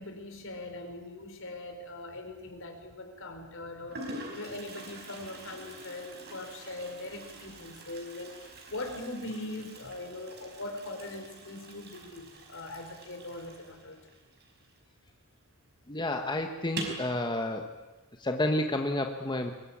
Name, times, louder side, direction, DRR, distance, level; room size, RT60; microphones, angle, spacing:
voice 1, 0.0-14.0, left 2 dB, 65° left, 5 dB, 4.8 m, -41 dB
Toilet flush, 2.4-2.9 3.6-3.7 3.9-15.2 15.4-15.5 15.9-16.0 16.6-17.1, right 2 dB, 50° right, 5.5 m, -45 dB
voice 2, 15.9-17.7 18.2-19.5, left 1 dB, 20° left, 4 dB, 1.4 m, -30 dB
23.5 x 22.0 x 8.9 m, 1.2 s
head